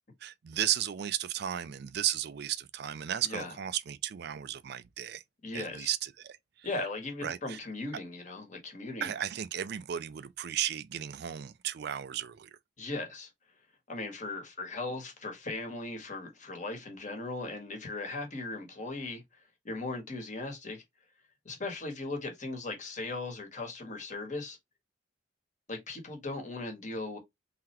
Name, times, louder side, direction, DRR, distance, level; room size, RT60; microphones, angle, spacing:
voice 1, 0.2-5.2 5.5-6.7 7.2-7.6 9.0-12.5, right 10 dB, 60° right, 0.4 m, -34 dB
voice 2, 3.2-3.5 5.4-5.9 6.6-9.1 12.8-13.3 13.9-19.2 19.6-20.8 21.4-24.6 25.7-27.2, left 2 dB, 40° left, 1.5 m, -38 dB
3.8 x 3.3 x 2.9 m
head